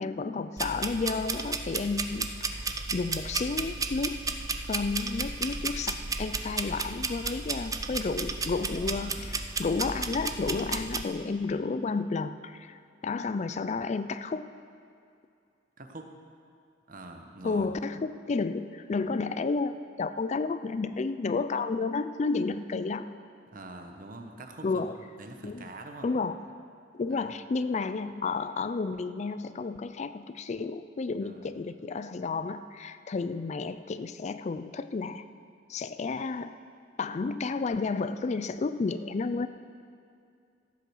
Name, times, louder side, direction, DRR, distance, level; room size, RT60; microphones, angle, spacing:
voice 1, 0.0-4.2 4.7-14.5 17.4-23.1 24.6-25.0 25.4-25.7 26.0-26.4 26.9-35.2 35.7-36.5 37.0-39.5, left 4 dB, 40° left, 12 dB, 0.4 m, -31 dB
sound 1, 0.6-11.0, right 4 dB, 20° right, 0.5 m, -33 dB
voice 2, 9.0-9.4 15.8-16.1 16.9-17.7 23.5-26.1 27.1-27.3 31.2-31.5, right 2 dB, 45° right, 4 dB, 1.1 m, -45 dB
14.0 x 8.5 x 6.3 m, 2.4 s
head